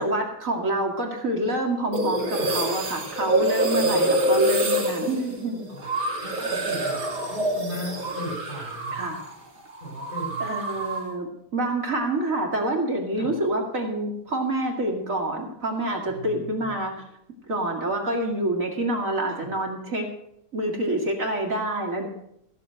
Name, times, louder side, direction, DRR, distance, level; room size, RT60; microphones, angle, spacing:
voice 1, 0.0-5.7 8.9-9.2 10.4-17.1 17.5-20.1 20.5-22.1, right 1 dB, 55° right, 1 dB, 2.4 m, -27 dB
sound 1, 1.9-9.3 9.6-11.1, right 1 dB, 90° right, 3.4 m, -26 dB
voice 2, 3.8-4.2 5.7-5.9 6.2-7.0 7.3-9.1 9.8-10.5 13.2-13.4 16.1-16.8 19.3-19.5, equal, 30° left, 1 dB, 4.0 m, -37 dB
15.5 x 6.6 x 7.8 m, 0.74 s
omnidirectional pair, 1.7 m